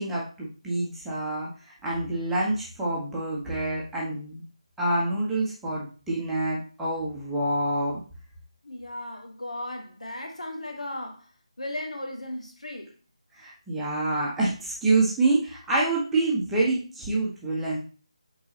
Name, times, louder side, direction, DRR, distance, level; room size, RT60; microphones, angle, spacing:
voice 1, 0.0-1.5 1.8-4.4 4.8-8.0 13.3-17.8, right 2 dB, 5° right, 1.0 m, -27 dB
voice 2, 8.6-11.3 11.6-12.9, left 1 dB, 70° left, 1.4 m, -36 dB
8.4 x 3.9 x 2.9 m
figure-of-eight pair, 160°, 4 cm